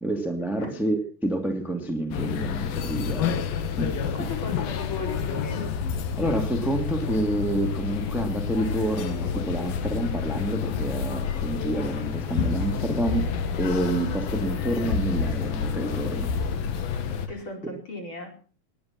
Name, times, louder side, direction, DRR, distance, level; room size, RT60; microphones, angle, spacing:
voice 1, 0.0-3.4 3.8-4.0 6.2-16.3, right 1 dB, ahead, 4 dB, 1.4 m, -28 dB
sound 1, 2.1-17.3, left 6 dB, 70° left, 3.2 m, -29 dB
voice 2, 4.1-5.7 17.3-18.3, left 3 dB, 30° left, 2 dB, 5.2 m, -36 dB
20.5 x 11.0 x 6.1 m, 0.41 s
omnidirectional pair, 4.5 m